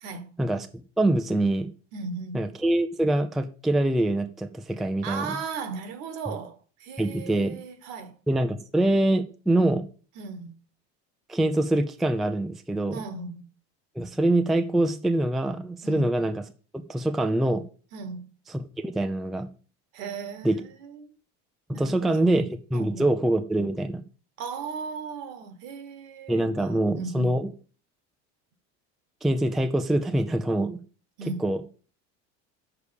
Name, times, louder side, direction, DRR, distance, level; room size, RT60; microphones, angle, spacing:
voice 1, 0.0-0.4 1.9-2.4 5.0-8.1 10.2-10.6 12.9-13.5 15.8-16.1 17.9-18.3 19.9-21.1 21.7-22.5 22.7-23.1 24.4-27.4 31.2-31.4, right 5 dB, 70° right, 1.6 m, -37 dB
voice 2, 1.0-1.7 2.3-5.3 7.0-7.6 8.3-9.9 11.3-13.0 14.0-16.4 16.7-17.6 18.5-19.5 20.4-20.6 21.7-24.0 26.3-27.5 29.2-30.8 31.4-31.6, right 1 dB, ahead, 0.4 m, -24 dB
6.7 x 4.8 x 6.9 m
cardioid pair, 135°, 33 cm